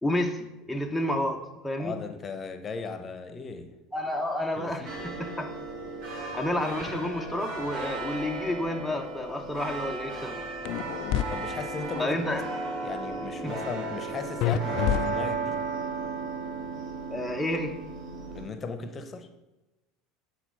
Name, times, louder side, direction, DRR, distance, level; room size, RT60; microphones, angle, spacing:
voice 1, 0.0-2.0 3.9-5.5 6.3-10.5 10.9-11.0 12.0-12.5 13.4-13.6 17.1-17.8, left 1 dB, ahead, 1 dB, 0.8 m, -30 dB
voice 2, 1.8-3.7 4.5-5.0 11.3-12.2 12.8-15.6 18.3-19.3, left 4 dB, 30° left, 8 dB, 0.9 m, -37 dB
sound 1, 4.8-18.5, right 3 dB, 60° right, 2.6 m, -35 dB
sound 2, 10.6-11.2 14.4-15.6, left 11 dB, 60° left, 0.4 m, -27 dB
8.4 x 4.0 x 5.4 m, 1.0 s
hypercardioid pair, 85°, 0 cm